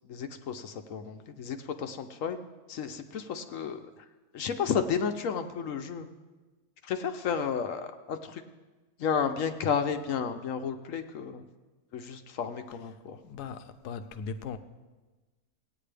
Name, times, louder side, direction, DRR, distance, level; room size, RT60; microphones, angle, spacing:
voice 1, 0.1-2.4 2.7-4.1 4.3-6.1 6.8-8.4 9.0-11.5 11.9-13.2, left 7 dB, 65° left, 8 dB, 0.9 m, -32 dB
voice 2, 13.2-14.6, left 5 dB, 85° left, 10 dB, 1.2 m, -38 dB
17.5 x 9.4 x 3.3 m, 1.2 s
omnidirectional pair, 1.7 m